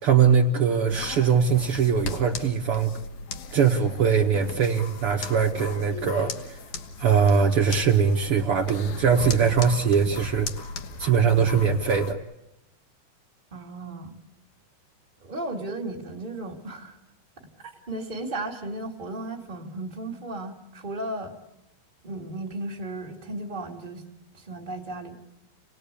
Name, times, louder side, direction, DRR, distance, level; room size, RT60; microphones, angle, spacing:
voice 1, 0.0-2.9 3.5-6.6 7.0-10.5 11.0-12.2, right 6 dB, 75° right, 1 dB, 1.2 m, -21 dB
sound 1, 0.9-12.1, left 3 dB, 60° left, 2.2 m, -36 dB
voice 2, 13.5-14.2 15.2-17.0 17.6-21.4 22.0-24.1 24.3-25.2, right 2 dB, 15° right, 1 dB, 1.7 m, -35 dB
29.5 x 19.0 x 8.5 m, 0.90 s
omnidirectional pair, 4.7 m